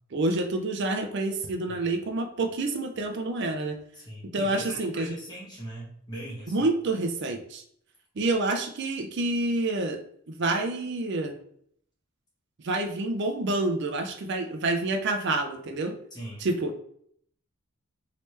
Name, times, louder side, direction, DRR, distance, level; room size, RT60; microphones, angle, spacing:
voice 1, 0.1-3.8 4.3-5.1 6.5-7.6 8.2-10.0 10.3-11.3 12.6-15.9 16.4-16.8, right 2 dB, 55° right, 6 dB, 0.5 m, -28 dB
voice 2, 3.9-6.7 16.1-16.5, right 1 dB, 20° left, -5 dB, 1.2 m, -40 dB
3.2 x 2.9 x 3.2 m, 0.66 s
head